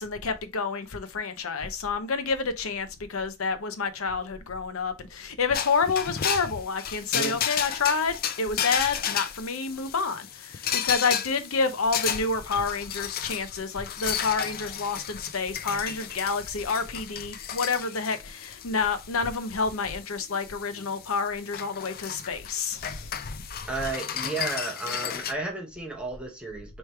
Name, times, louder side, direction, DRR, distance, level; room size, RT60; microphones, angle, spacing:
voice 1, 0.0-23.1, left 4 dB, 75° left, 0.7 m, -29 dB
sound 1, 5.5-25.3, left 9 dB, 45° left, 0.4 m, -33 dB
voice 2, 23.7-26.8, right 3 dB, 5° right, 0.9 m, -33 dB
4.6 x 3.2 x 3.2 m
head